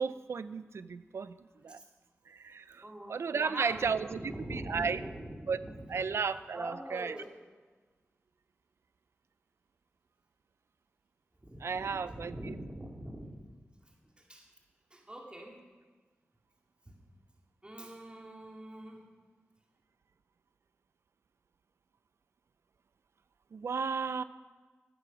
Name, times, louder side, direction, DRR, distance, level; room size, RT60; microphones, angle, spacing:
voice 1, 0.0-1.4 1.6-1.8 2.3-2.8 3.1-5.0 5.5-5.6 5.9-7.2 11.6-12.5 23.5-24.2, right 5 dB, 80° right, 14 dB, 0.5 m, -34 dB
voice 2, 2.8-3.2 3.4-6.0 6.5-7.4 11.4-13.4 14.3-14.5 14.9-15.6 16.9-17.0 17.6-19.0, right 1 dB, 25° right, -1 dB, 2.5 m, -43 dB
15.5 x 8.6 x 6.2 m, 1.4 s
cardioid pair, 50°, 4 cm